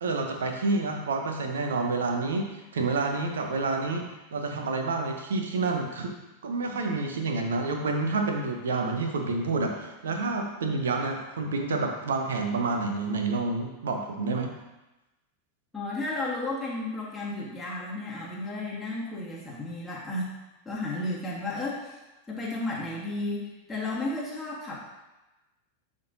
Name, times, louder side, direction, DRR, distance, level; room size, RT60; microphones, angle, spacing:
voice 1, 0.0-4.0 4.3-6.2 6.4-14.5, right 3 dB, 65° right, 3 dB, 0.8 m, -28 dB
voice 2, 15.7-20.3 20.6-22.0 22.3-24.8, left 2 dB, 5° left, -7 dB, 1.6 m, -33 dB
10.5 x 3.7 x 2.7 m, 1.0 s
figure-of-eight pair, 90°, 0 cm